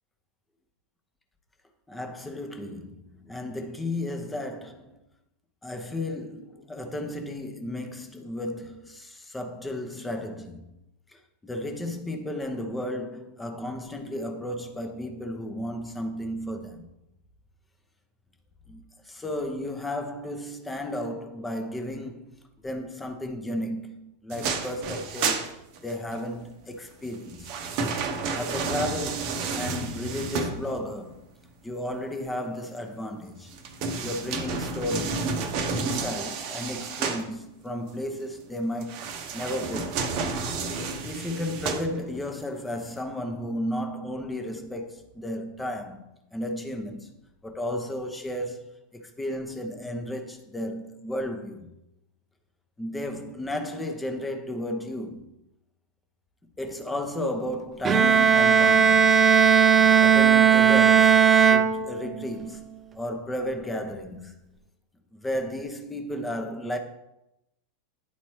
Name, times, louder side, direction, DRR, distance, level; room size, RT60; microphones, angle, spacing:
voice 1, 1.9-5.0 5.6-10.7 11.4-16.9 18.7-22.3 22.6-25.4 25.8-27.5 28.1-31.2 31.6-33.5 34.0-35.3 35.8-39.0 39.3-40.0 41.0-46.0 46.3-47.1 47.4-48.6 48.9-51.7 52.8-55.2 56.6-59.2 60.0-62.7 63.0-64.4 65.2-66.8, left 1 dB, 10° left, 0.9 m, -33 dB
sound 1, 24.3-26.2 27.0-31.0 33.5-37.3 38.8-42.3 42.8-42.9, right 4 dB, 45° right, 0.8 m, -31 dB
Bowed string instrument, 57.8-62.3, right 7 dB, 20° right, 0.5 m, -18 dB
10.0 x 4.1 x 3.1 m
figure-of-eight pair, 90°, 0 cm